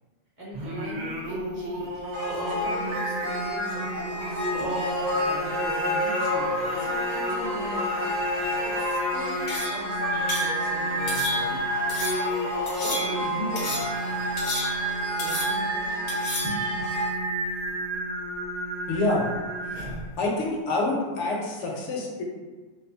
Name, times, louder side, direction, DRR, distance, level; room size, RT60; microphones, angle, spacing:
voice 1, 0.4-1.9 2.4-4.7 5.1-8.1 8.6-11.6 12.7-14.3 15.1-16.2 16.4-16.7, equal, 10° right, -8 dB, 0.8 m, -39 dB
Singing, 0.5-20.1, right 1 dB, 50° right, 0.5 m, -30 dB
sound 1, 2.1-17.1, left 1 dB, 70° right, 0.9 m, -32 dB
sound 2, 9.5-9.9 10.3-10.6 11.1-11.6 11.9-12.3 12.7-13.3 13.6-14.0 14.4-14.9 15.2-15.7 16.1-16.6, left 2 dB, 50° left, 0.6 m, -32 dB
voice 2, 18.9-19.3 19.7-19.8 20.2-22.2, left 2 dB, 75° left, -1 dB, 0.9 m, -27 dB
2.5 x 2.3 x 2.5 m, 1.4 s
omnidirectional pair, 1.3 m